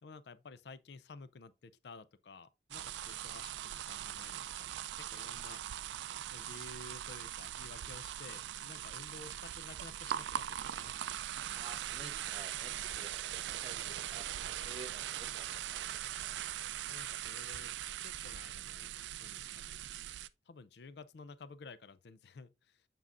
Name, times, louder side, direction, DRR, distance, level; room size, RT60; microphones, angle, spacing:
voice 1, 0.0-5.7 6.3-11.0 12.8-13.2 16.9-17.8 18.0-18.9 19.2-19.8 20.5-22.9, left 4 dB, 75° left, 0.5 m, -53 dB
sound 1, 2.7-20.3, right 11 dB, 90° right, 0.3 m, -41 dB
voice 2, 11.5-16.4, right 3 dB, 30° right, 0.5 m, -53 dB
7.3 x 5.6 x 2.5 m
head